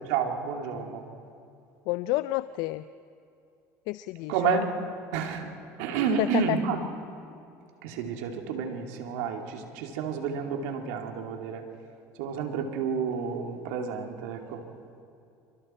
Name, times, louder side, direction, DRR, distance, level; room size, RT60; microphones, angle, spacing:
voice 1, 0.1-1.0 4.3-4.7 5.1-5.5 5.8-6.8 7.8-11.6 12.2-14.6, right 6 dB, 85° right, 3 dB, 2.8 m, -30 dB
voice 2, 1.9-2.8 3.9-4.7 6.2-6.6, left 18 dB, 75° left, 14 dB, 0.5 m, -29 dB
27.0 x 24.0 x 4.5 m, 2.6 s
supercardioid pair, 100°, 7 cm